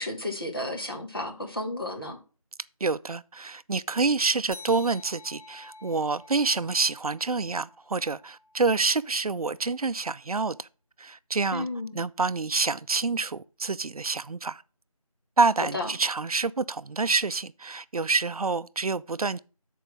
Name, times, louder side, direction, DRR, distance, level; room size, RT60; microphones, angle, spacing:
voice 1, 0.0-2.2 11.5-12.0 15.6-15.9, left 2 dB, 40° left, 1.3 m, -32 dB
voice 2, 2.8-10.7 11.0-11.7 11.9-14.6 15.4-19.4, right 4 dB, 75° right, 0.4 m, -27 dB
sound 1, 4.5-9.4, left 3 dB, 70° left, 2.6 m, -50 dB
6.8 x 4.5 x 5.7 m
figure-of-eight pair, 175°, 19 cm